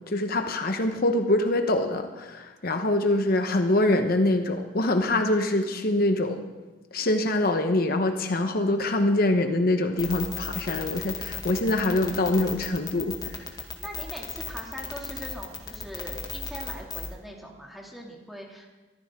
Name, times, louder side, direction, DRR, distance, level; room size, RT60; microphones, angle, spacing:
voice 1, 0.0-6.5 6.9-13.4, left 1 dB, 55° left, 6 dB, 1.0 m, -24 dB
sound 1, 10.0-17.1, left 5 dB, 25° left, 2.1 m, -35 dB
voice 2, 13.8-18.7, equal, ahead, -1 dB, 2.5 m, -41 dB
23.0 x 15.0 x 3.7 m, 1.2 s
head